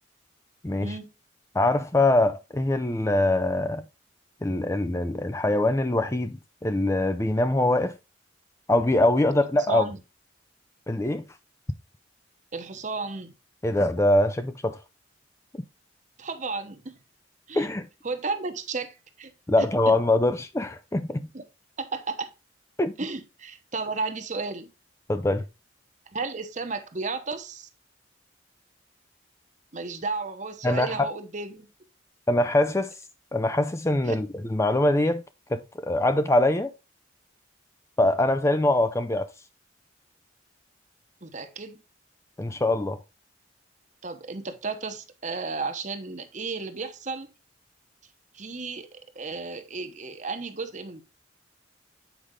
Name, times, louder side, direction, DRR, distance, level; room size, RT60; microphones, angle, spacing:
voice 1, 0.6-0.9 1.5-3.8 4.4-7.9 8.7-9.8 10.9-11.2 13.6-14.8 17.5-17.9 19.5-21.3 22.8-22.9 25.1-25.4 30.6-31.1 32.3-32.9 33.3-35.2 35.5-36.7 38.0-39.3 42.4-43.0, left 1 dB, 15° left, 0.4 m, -23 dB
voice 2, 9.7-10.0 12.5-13.3 16.2-17.0 17.5-17.7 18.0-19.3 19.6-19.9 21.3-21.5 21.8-22.3 23.0-24.7 26.1-27.7 29.7-31.7 34.0-34.2 41.2-41.8 44.0-47.3 48.3-51.0, right 3 dB, 40° right, 0.9 m, -33 dB
8.2 x 5.0 x 3.6 m
head